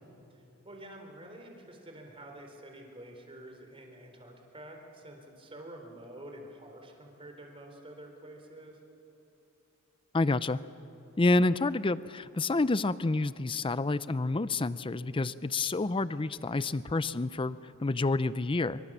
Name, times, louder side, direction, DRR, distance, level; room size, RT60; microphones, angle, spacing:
voice 1, 0.3-8.8, right 1 dB, 25° right, 3 dB, 3.7 m, -48 dB
voice 2, 10.1-10.6 11.2-18.8, left 2 dB, 25° left, 15 dB, 0.5 m, -28 dB
25.5 x 25.0 x 7.3 m, 3.0 s
head